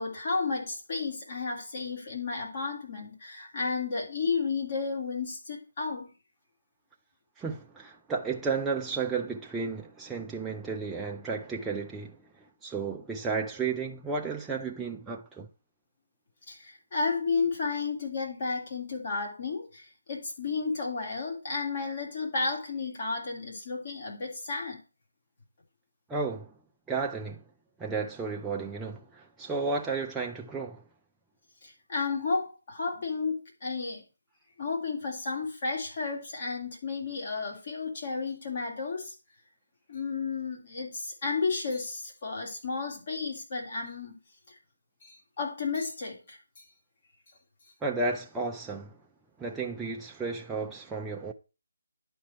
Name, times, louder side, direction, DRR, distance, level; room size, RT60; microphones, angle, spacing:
voice 1, 0.0-6.1 16.5-24.8 31.6-34.0 34.6-39.1 39.9-44.2 44.5-44.6 45.0-46.6, left 4 dB, 40° left, 3.0 m, -32 dB
voice 2, 7.4-15.5 26.1-26.5 26.9-27.4 27.8-30.8 47.8-49.0 49.4-51.3, right 4 dB, 5° right, 0.6 m, -33 dB
11.0 x 4.4 x 4.4 m
figure-of-eight pair, 165°, 0 cm